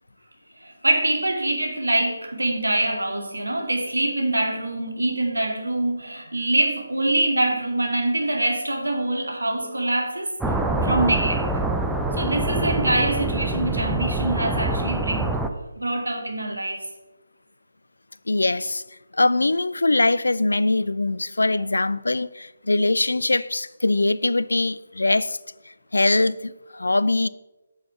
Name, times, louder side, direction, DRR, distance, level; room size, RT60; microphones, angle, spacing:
voice 1, 0.6-10.4 10.8-11.5 12.1-15.3 15.8-16.9, right 1 dB, 75° right, 2.1 m, -24 dB
sound 1, 10.4-15.5, right 2 dB, 5° right, 0.6 m, -25 dB
voice 2, 18.3-18.8 19.1-25.4 25.9-27.3, left 2 dB, 70° left, 0.4 m, -22 dB
8.4 x 6.5 x 5.7 m
figure-of-eight pair, 145°, 0 cm